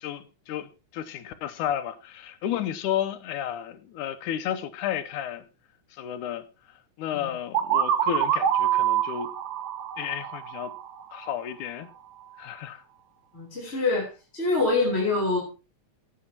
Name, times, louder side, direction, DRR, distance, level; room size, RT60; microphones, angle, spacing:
voice 1, 0.0-5.4 5.9-6.4 7.0-9.3 10.0-10.7 11.1-11.9 12.4-12.8 13.7-13.8, left 10 dB, 80° left, 2.3 m, -32 dB
sound 1, 7.5-11.3, right 10 dB, 80° right, 2.7 m, -26 dB
voice 2, 13.3-14.1 14.3-15.4, left 3 dB, 20° left, 3.7 m, -25 dB
18.0 x 10.0 x 3.0 m
omnidirectional pair, 3.6 m